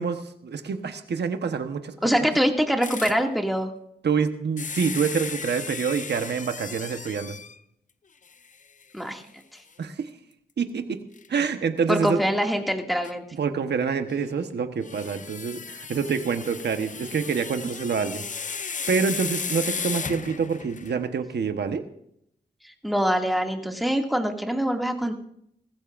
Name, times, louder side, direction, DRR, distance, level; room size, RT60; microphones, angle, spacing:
voice 1, 0.0-2.3 4.0-7.4 9.8-10.1 10.6-11.0 11.3-12.2 13.4-18.2 18.9-21.8, right 6 dB, 80° right, 7 dB, 1.2 m, -27 dB
voice 2, 2.0-3.7 8.9-9.3 11.9-13.2 22.8-25.1, equal, ahead, 2 dB, 2.3 m, -24 dB
sound 1, 2.8-3.2 4.6-7.6 8.3-8.4 8.8-8.9 11.2-11.3 13.0-13.1 14.8-21.0, left 5 dB, 50° left, 0.7 m, -35 dB
19.0 x 15.0 x 2.6 m, 0.72 s
cardioid pair, 70°, 17 cm